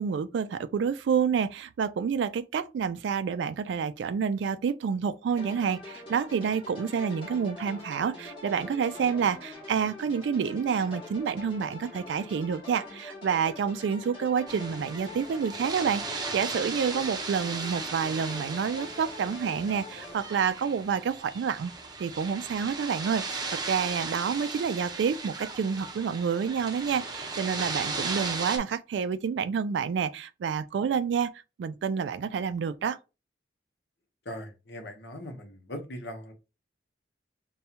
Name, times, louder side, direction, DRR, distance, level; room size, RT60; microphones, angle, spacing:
voice 1, 0.0-21.7 22.0-31.3 31.6-33.0, right 6 dB, 75° right, 0.3 m, -28 dB
sound 1, 5.4-20.1, left 2 dB, 30° left, 2.0 m, -44 dB
sound 2, 14.5-28.6, right 4 dB, 25° right, 0.6 m, -36 dB
voice 2, 34.3-36.3, equal, 65° left, 0.9 m, -40 dB
5.4 x 2.3 x 2.8 m
head